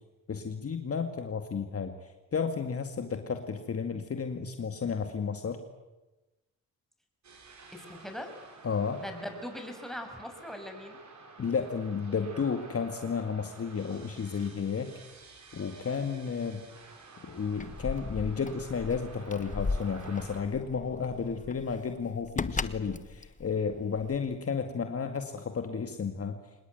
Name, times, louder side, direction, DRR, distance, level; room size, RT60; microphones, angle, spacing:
voice 1, 0.3-5.6 8.6-9.0 11.4-14.9 15.5-16.7 17.2-26.4, left 6 dB, 40° left, 6 dB, 2.2 m, -32 dB
sound 1, 7.2-20.4, right 3 dB, 55° right, 6.9 m, -51 dB
voice 2, 7.7-8.3 8.9-11.0, left 1 dB, ahead, 4 dB, 6.1 m, -40 dB
Keys jangling, 17.4-24.3, left 4 dB, 20° left, 1.2 m, -37 dB
25.5 x 20.5 x 9.4 m, 1.1 s
supercardioid pair, 75°, 35 cm